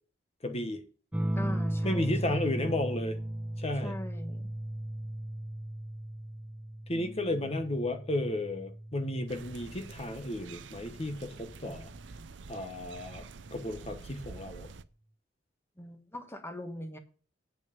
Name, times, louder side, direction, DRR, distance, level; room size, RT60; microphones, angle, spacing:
voice 1, 0.4-0.8 1.8-3.2 3.6-3.9 6.9-11.9 12.5-13.2 13.5-14.7, left 1 dB, 35° left, 1.1 m, -33 dB
sound 1, 1.1-10.2 11.6-12.2, right 1 dB, 5° right, 0.4 m, -36 dB
voice 2, 1.3-2.7 3.8-4.5 6.9-7.5 15.8-17.0, left 1 dB, 15° left, 1.4 m, -42 dB
sound 2, 9.3-14.8, right 4 dB, 75° right, 0.6 m, -47 dB
8.8 x 6.4 x 6.8 m
head